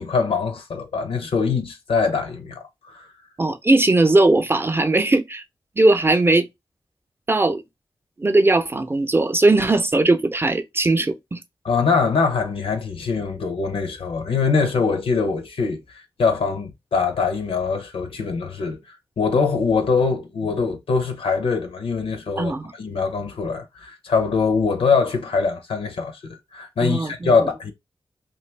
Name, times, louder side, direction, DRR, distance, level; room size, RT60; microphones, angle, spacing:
voice 1, 0.0-3.1 11.6-22.5 22.8-27.7, left 5 dB, 80° left, 0.5 m, -23 dB
voice 2, 3.4-5.4 5.8-6.5 7.3-7.6 8.2-11.4 22.4-22.7 26.8-27.3, right 2 dB, 25° right, 0.5 m, -19 dB
2.5 x 2.2 x 3.2 m
cardioid pair, 45°, 9 cm